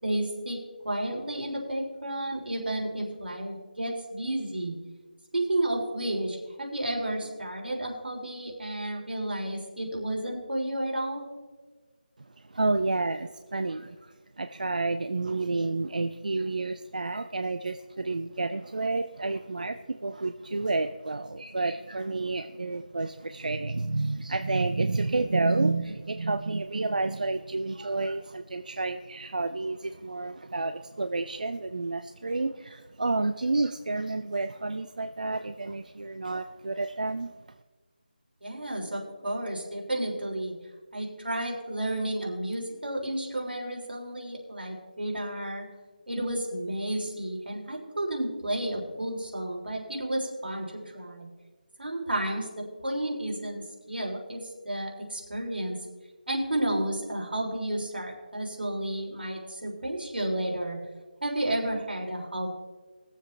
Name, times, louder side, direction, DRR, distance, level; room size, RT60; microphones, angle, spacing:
voice 1, 0.0-0.6 0.8-4.7 5.3-11.3 38.4-40.5 40.9-45.7 46.1-50.7 50.9-51.3 51.8-55.8 56.3-60.8 61.2-62.5, right 1 dB, 80° right, -1 dB, 3.6 m, -32 dB
voice 2, 12.5-37.3, right 3 dB, 55° right, 9 dB, 0.5 m, -30 dB
21.0 x 7.6 x 3.3 m, 1.4 s
figure-of-eight pair, 180°, 5 cm